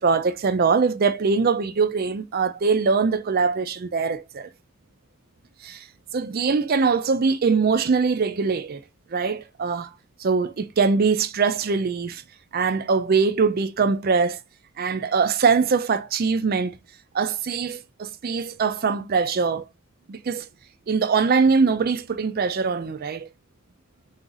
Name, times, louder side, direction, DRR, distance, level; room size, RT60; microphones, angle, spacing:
voice 1, 0.0-4.5 5.6-5.9 6.1-8.8 9.1-9.9 10.2-12.2 12.5-14.4 14.8-16.7 17.1-19.7 20.1-20.5 20.9-23.3, right 5 dB, 45° right, 0.4 m, -22 dB
3.9 x 2.4 x 3.9 m
head